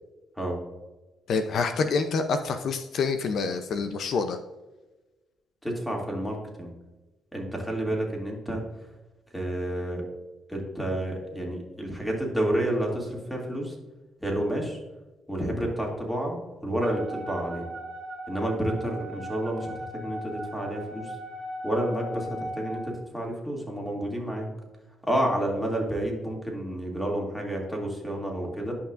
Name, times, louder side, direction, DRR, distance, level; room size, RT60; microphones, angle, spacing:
voice 1, 1.3-4.4, left 4 dB, 65° left, 8 dB, 0.5 m, -27 dB
voice 2, 5.6-6.7 7.3-8.6 9.3-10.0 10.5-13.8 14.2-14.8 15.3-17.7 18.3-21.2 21.6-24.5 25.0-28.7, right 1 dB, 5° left, -1 dB, 2.4 m, -30 dB
Wind instrument woodwind instrument, 16.8-22.9, equal, 70° right, 2.3 m, -38 dB
11.0 x 5.7 x 2.5 m, 1.1 s
cardioid pair, 90°, 0 cm